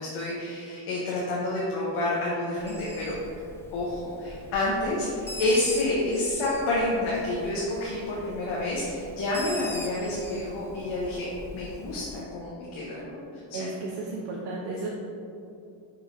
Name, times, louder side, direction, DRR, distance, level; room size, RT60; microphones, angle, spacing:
voice 1, 0.0-3.1 3.7-11.3 11.5-13.1 13.3-13.7, left 2 dB, 85° left, -5 dB, 1.4 m, -29 dB
Bird, 2.6-12.2, left 1 dB, 5° left, 0.5 m, -43 dB
voice 2, 13.5-14.9, right 2 dB, 60° right, -3 dB, 0.9 m, -33 dB
6.7 x 5.2 x 4.4 m, 2.6 s
cardioid pair, 175°, 48 cm